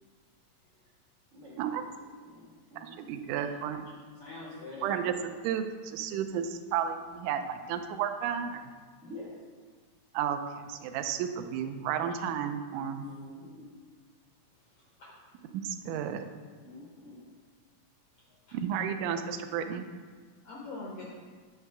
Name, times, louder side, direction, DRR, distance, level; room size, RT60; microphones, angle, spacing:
voice 1, 1.3-3.3 4.3-4.9 9.0-9.5 13.0-13.7 16.6-17.3, left 1 dB, 65° right, -8 dB, 0.7 m, -48 dB
voice 2, 3.0-3.9 4.8-5.1 5.4-8.7 10.1-13.0 15.5-16.3 18.5-19.9, right 8 dB, 80° right, 7 dB, 1.9 m, -32 dB
voice 3, 4.2-4.9 14.7-15.1 18.5-18.6 20.4-21.0, left 3 dB, 75° left, -4 dB, 1.3 m, -43 dB
8.2 x 3.3 x 5.8 m, 1.5 s
omnidirectional pair, 3.8 m